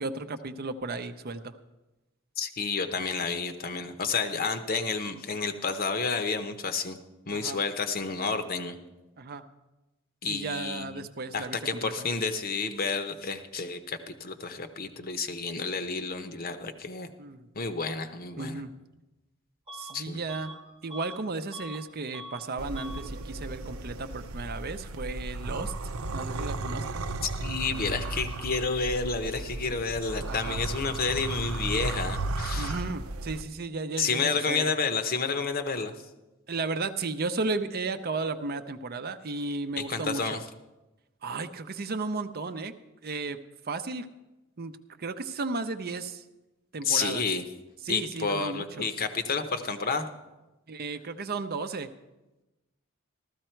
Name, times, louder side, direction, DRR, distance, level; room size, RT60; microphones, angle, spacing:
voice 1, 0.0-1.5 7.3-7.6 9.2-9.4 10.3-11.9 17.2-17.5 18.4-18.7 19.7-20.5 20.8-27.0 30.3-30.6 32.6-34.7 36.5-40.4 41.2-42.8 43.0-43.4 43.7-44.1 44.6-44.7 45.0-46.2 46.7-47.2 47.8-48.9 50.7-51.9, right 3 dB, 45° right, 9 dB, 0.6 m, -34 dB
voice 2, 2.4-7.0 7.3-8.8 10.2-11.1 11.3-17.1 17.5-18.6 19.9-20.2 27.2-32.8 34.0-35.9 39.7-40.4 46.8-47.4 47.9-50.1, left 4 dB, 45° left, 9 dB, 0.9 m, -30 dB
Bus / Alarm, 19.7-20.0 20.3-21.8 22.1-22.5 22.7-23.1, equal, 25° right, 1.1 m, -43 dB
sound 1, 22.6-33.4, right 2 dB, 90° right, 0.7 m, -35 dB
14.5 x 13.5 x 4.5 m, 1.0 s
head